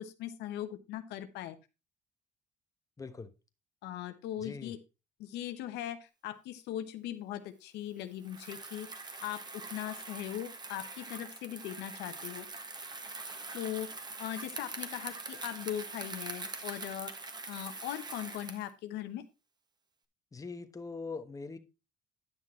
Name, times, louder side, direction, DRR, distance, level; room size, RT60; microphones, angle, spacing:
voice 1, 0.0-1.6 3.8-4.8 5.2-8.9 9.2-12.5 13.5-13.9 14.2-17.2 17.5-19.2, left 12 dB, 85° left, 1.0 m, -39 dB
voice 2, 3.0-3.3 4.4-4.7 20.3-21.6, left 4 dB, 20° left, 1.1 m, -42 dB
Bicycle, 8.2-18.7, right 3 dB, 25° right, 1.4 m, -43 dB
10.0 x 6.1 x 4.3 m
cardioid pair, 110°, 17 cm